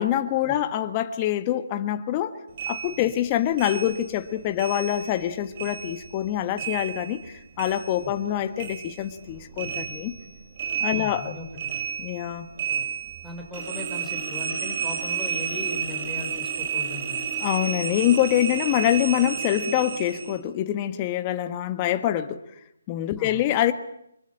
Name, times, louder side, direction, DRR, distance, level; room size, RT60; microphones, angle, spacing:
voice 1, 0.0-2.4 2.7-10.1 10.8-11.3 12.0-12.5 17.4-22.4 22.9-23.7, left 12 dB, 25° left, 8 dB, 1.6 m, -25 dB
sound 1, 2.6-5.3 5.6-8.3 8.6-20.4, right 6 dB, 40° right, 4.8 m, -32 dB
voice 2, 10.9-11.5 13.2-17.3 23.2-23.4, left 2 dB, 5° left, 2 dB, 3.9 m, -38 dB
25.5 x 23.0 x 8.8 m, 0.77 s
figure-of-eight pair, 155°, 0 cm